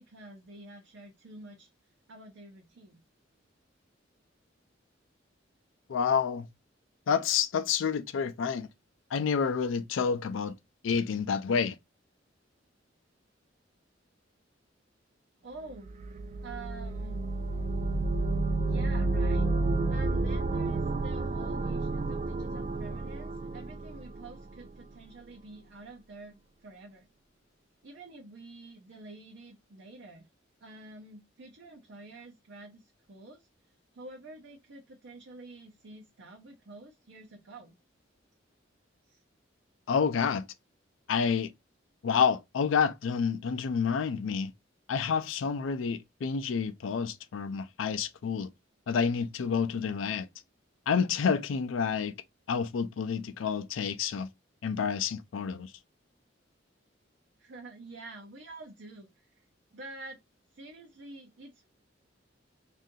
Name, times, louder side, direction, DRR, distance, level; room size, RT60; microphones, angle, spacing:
voice 1, 0.0-1.7 2.1-3.0 15.4-15.9 16.4-17.2 18.6-19.5 19.9-27.1 27.8-30.3 30.6-33.5 33.9-37.7 39.0-39.2 40.1-40.2 57.4-59.4 59.7-60.2 60.5-61.7, right 2 dB, 65° right, 0.7 m, -48 dB
voice 2, 5.9-6.5 7.1-8.7 9.1-10.5 10.8-11.8 39.9-40.4 41.1-41.5 42.0-44.5 44.9-48.5 48.9-50.3 50.9-52.1 52.5-54.3 54.6-55.7, left 6 dB, 85° left, 0.4 m, -29 dB
sound 1, 15.8-24.7, right 3 dB, 35° right, 0.3 m, -30 dB
2.7 x 2.5 x 3.6 m
head